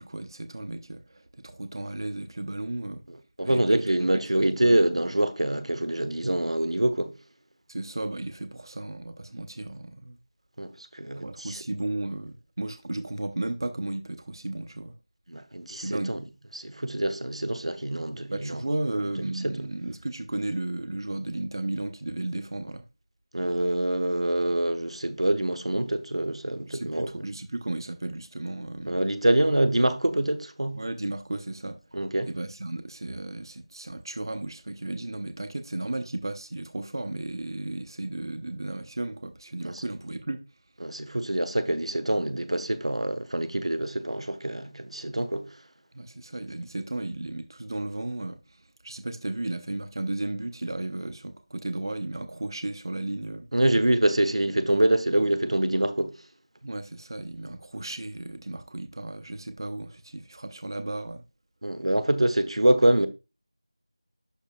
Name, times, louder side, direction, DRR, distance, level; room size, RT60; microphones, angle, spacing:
voice 1, 0.0-3.0 3.4-4.8 7.7-10.2 11.2-14.9 15.8-16.2 18.3-22.8 26.7-29.1 30.7-31.8 32.3-40.4 45.9-53.5 56.6-61.2, right 2 dB, 45° right, 0.6 m, -34 dB
voice 2, 3.1-7.1 10.6-11.6 15.3-16.2 16.5-18.7 19.2-19.7 23.3-27.3 28.9-30.8 31.9-32.3 39.6-39.8 40.8-45.6 53.5-56.2 61.6-63.1, right 1 dB, 85° right, 1.0 m, -25 dB
11.5 x 4.8 x 2.3 m
figure-of-eight pair, 175°, 3 cm